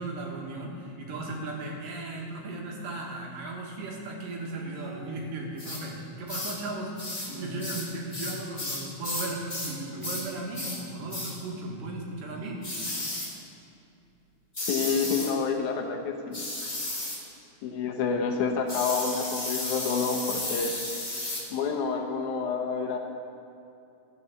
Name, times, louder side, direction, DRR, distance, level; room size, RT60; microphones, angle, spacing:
voice 1, 0.0-12.9, right 2 dB, 90° right, -1 dB, 3.2 m, -36 dB
sound 1, 4.6-5.7 7.2-8.4 9.8-10.9 12.2-13.2, right 3 dB, 70° right, 3.6 m, -46 dB
sound 2, 5.6-5.8 6.3-6.6 7.0-7.3 7.6-9.8 10.0-10.3 10.5-10.8 11.1-11.4 12.6-13.3 14.5-15.3 16.3-17.2 18.7-21.5, left 2 dB, 20° left, 1.1 m, -33 dB
voice 2, 14.7-16.5 17.6-20.7 21.5-23.0, left 5 dB, 75° left, 3 dB, 2.3 m, -28 dB
13.5 x 6.9 x 7.2 m, 2.7 s
omnidirectional pair, 3.7 m